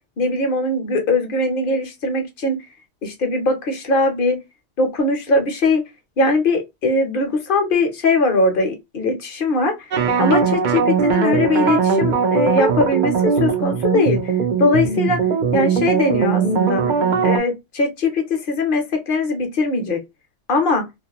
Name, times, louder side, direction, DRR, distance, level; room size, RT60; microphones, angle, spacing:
voice 1, 0.2-2.6 3.0-4.4 4.8-5.8 6.2-14.3 14.6-15.2 15.5-16.8 17.2-20.0 20.5-20.9, left 2 dB, 55° left, 0.7 m, -20 dB
sound 1, 9.9-17.4, right 6 dB, 60° right, 0.5 m, -19 dB
2.3 x 2.1 x 2.7 m
omnidirectional pair, 1.2 m